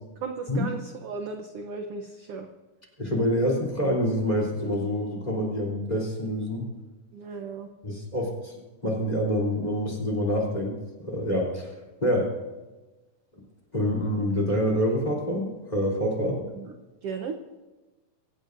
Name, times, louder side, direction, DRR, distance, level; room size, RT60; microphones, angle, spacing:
voice 1, 0.2-2.5 7.1-7.7 16.5-16.7 17.0-17.4, right 5 dB, 70° right, 5 dB, 1.4 m, -35 dB
voice 2, 3.0-6.7 7.8-8.5 8.8-11.7 12.0-12.3 13.7-16.4, equal, 15° left, 0 dB, 3.1 m, -26 dB
24.5 x 17.0 x 2.6 m, 1.2 s
omnidirectional pair, 3.7 m